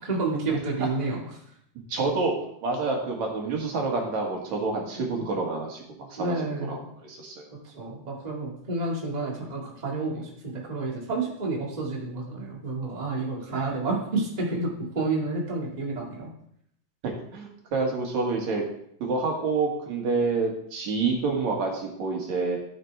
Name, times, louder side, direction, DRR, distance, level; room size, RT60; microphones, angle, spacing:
voice 1, 0.0-1.2 5.0-5.2 6.2-6.9 7.8-16.3, right 3 dB, 15° right, -3 dB, 1.8 m, -30 dB
voice 2, 1.9-2.3 2.6-7.5 10.1-10.2 17.0-18.6 19.0-22.6, right 3 dB, 65° right, 0 dB, 3.1 m, -28 dB
13.5 x 6.0 x 4.7 m, 0.71 s
omnidirectional pair, 3.5 m